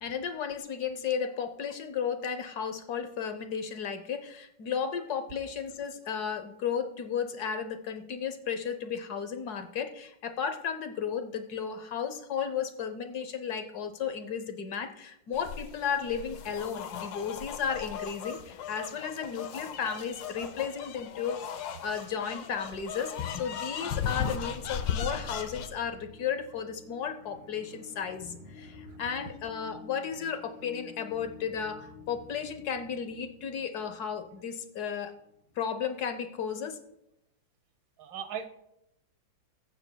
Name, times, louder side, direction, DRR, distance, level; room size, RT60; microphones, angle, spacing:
voice 1, 0.0-35.1 35.6-36.8, left 7 dB, 65° left, 8 dB, 1.2 m, -34 dB
sound 1, 15.3-25.7, left 8 dB, 90° left, 1.5 m, -37 dB
sound 2, 23.7-36.2, left 4 dB, 35° left, 2.9 m, -50 dB
voice 2, 38.0-38.5, right 8 dB, 85° right, 9 dB, 1.7 m, -38 dB
22.0 x 9.0 x 2.2 m, 0.85 s
omnidirectional pair, 2.0 m